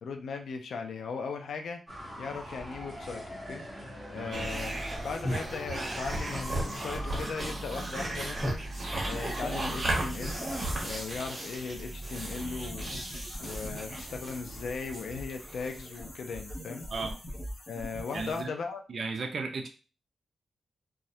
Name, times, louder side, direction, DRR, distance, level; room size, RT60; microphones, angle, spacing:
voice 1, 0.0-1.8 2.2-3.6 4.1-8.6 9.0-10.4 10.8-12.9 13.4-16.9 17.7-18.8, left 5 dB, 75° left, 5 dB, 0.4 m, -38 dB
sound 1, 1.9-7.3, equal, ahead, 0.7 m, -41 dB
voice 2, 4.1-4.5 16.9-17.2 18.1-18.5 18.9-19.7, right 4 dB, 50° right, 3 dB, 0.3 m, -35 dB
sound 2, 4.3-16.0, right 1 dB, 35° right, 0.8 m, -35 dB
sound 3, 9.1-18.4, left 1 dB, 40° left, 0.7 m, -43 dB
2.3 x 2.0 x 2.7 m, 0.35 s
wide cardioid pair, 130°, 0 cm